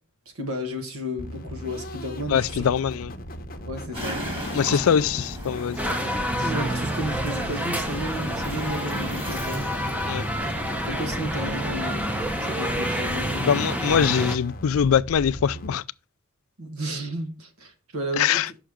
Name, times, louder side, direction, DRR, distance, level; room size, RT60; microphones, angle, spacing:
voice 1, 0.3-2.7 3.7-4.9 6.4-9.7 10.8-12.1 12.4-13.6 16.6-18.5, equal, 75° right, 1.7 m, -33 dB
sound 1, 1.2-15.7, equal, 40° left, 0.8 m, -37 dB
voice 2, 2.3-3.1 4.5-5.8 10.1-10.3 13.5-15.8 18.2-18.5, left 8 dB, 70° left, 0.4 m, -22 dB
sound 2, 3.9-14.3, equal, 25° right, 2.5 m, -39 dB
sound 3, 5.8-14.4, equal, 5° right, 0.7 m, -28 dB
6.3 x 5.7 x 5.0 m
head